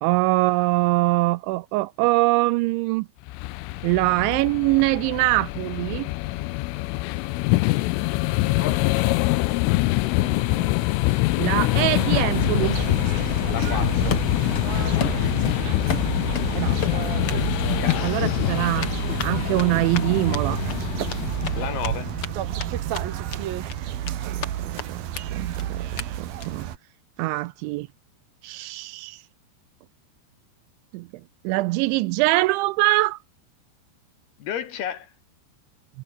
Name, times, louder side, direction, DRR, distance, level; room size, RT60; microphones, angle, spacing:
voice 1, 0.0-3.1 3.8-6.1 10.2-10.7 11.4-12.8 16.6-17.1 18.0-18.9 19.2-20.6 24.1-25.0 25.3-26.7 27.2-27.9 28.4-29.2 30.9-31.1 31.4-33.2, right 20 dB, 80° right, 2.8 m, -23 dB
sound 1, 3.3-22.3, left 20 dB, 85° left, 3.4 m, -25 dB
voice 2, 8.6-9.3 13.5-14.2 17.8-18.6 21.6-22.1 34.4-35.1, left 9 dB, 60° left, 3.7 m, -33 dB
sound 2, 11.9-26.8, right 11 dB, 60° right, 3.0 m, -30 dB
Run, 13.6-14.7 15.0-16.5 16.8-17.4 17.7-18.0 18.8-22.3 22.6-22.7 22.9-23.4 23.7-24.5 24.8-24.9 25.1-25.2 25.5-25.6 26.0-26.1 26.4-26.6, left 7 dB, 45° left, 1.9 m, -32 dB
omnidirectional pair, 5.6 m